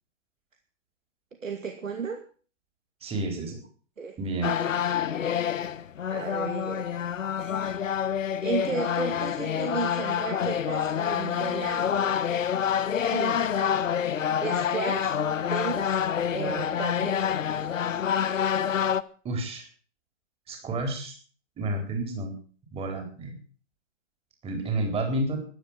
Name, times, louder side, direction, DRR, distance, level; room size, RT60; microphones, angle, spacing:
voice 1, 1.4-2.2 4.0-4.2 6.1-7.0 8.4-12.1 13.1-13.6 14.4-15.2 15.5-16.0 16.3-17.4, right 5 dB, 90° right, 5 dB, 2.5 m, -34 dB
voice 2, 3.0-3.6 4.2-4.5 19.2-19.6 20.5-21.1 21.6-22.3 22.7-23.3 24.4-25.4, right 2 dB, 15° right, 3 dB, 4.2 m, -30 dB
sound 1, 4.4-19.0, left 8 dB, 80° left, 1.2 m, -27 dB
14.0 x 11.0 x 7.4 m, 0.42 s
hypercardioid pair, 140°, 38 cm